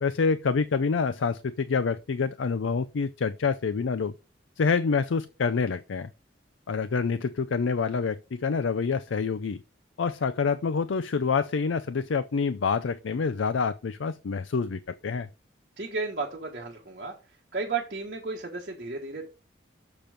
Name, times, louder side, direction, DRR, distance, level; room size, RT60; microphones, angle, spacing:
voice 1, 0.0-4.1 4.6-6.1 6.7-9.6 10.0-15.3, left 5 dB, 90° left, 0.5 m, -27 dB
voice 2, 15.8-17.1 17.5-19.3, right 4 dB, 50° right, 1.6 m, -33 dB
6.9 x 5.9 x 5.1 m
head